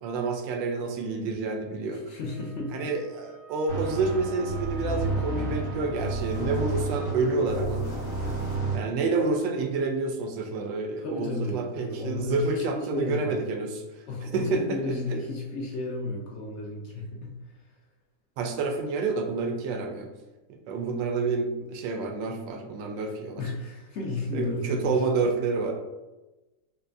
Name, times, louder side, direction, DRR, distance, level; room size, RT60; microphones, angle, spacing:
voice 1, 0.0-2.0 2.7-7.9 8.7-13.8 14.3-14.8 18.4-20.1 20.5-23.4 24.3-25.7, right 3 dB, 85° right, 3 dB, 1.3 m, -28 dB
voice 2, 1.9-2.9 11.0-13.4 14.1-17.4 23.4-25.3, left 2 dB, 70° left, -2 dB, 0.6 m, -33 dB
Wind instrument woodwind instrument, 2.2-6.7, right 6 dB, 45° right, 0.5 m, -49 dB
sound 1, 3.7-8.8, right 2 dB, 55° left, 1.6 m, -31 dB
5.3 x 2.1 x 2.5 m, 1.1 s
omnidirectional pair, 1.9 m